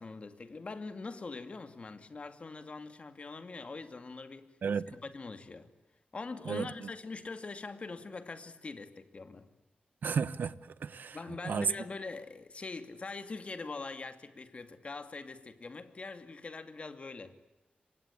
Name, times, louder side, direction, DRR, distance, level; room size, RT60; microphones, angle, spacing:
voice 1, 0.0-4.5 4.9-5.7 6.1-9.5 11.1-17.4, left 3 dB, 40° left, 2.4 m, -43 dB
voice 2, 4.6-5.0 6.4-6.9 10.0-11.2 11.4-11.7, right 6 dB, 75° right, 1.1 m, -33 dB
28.0 x 24.5 x 8.5 m
wide cardioid pair, 160°, 3 cm